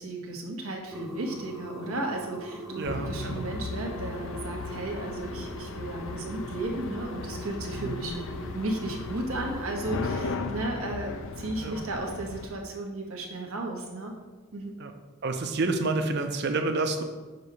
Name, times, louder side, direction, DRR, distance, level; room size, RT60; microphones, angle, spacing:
voice 1, 0.0-14.1 14.5-14.8, right 2 dB, 90° right, 1 dB, 1.0 m, -34 dB
sound 1, 0.9-10.1, equal, ahead, 0.8 m, -41 dB
sound 2, 2.8-12.5, left 4 dB, 60° left, 0.4 m, -37 dB
voice 2, 2.8-3.4 7.8-8.0 11.6-11.8 14.8-14.9 15.2-17.0, right 3 dB, 50° right, 6 dB, 0.5 m, -29 dB
6.5 x 2.8 x 5.2 m, 1.3 s
head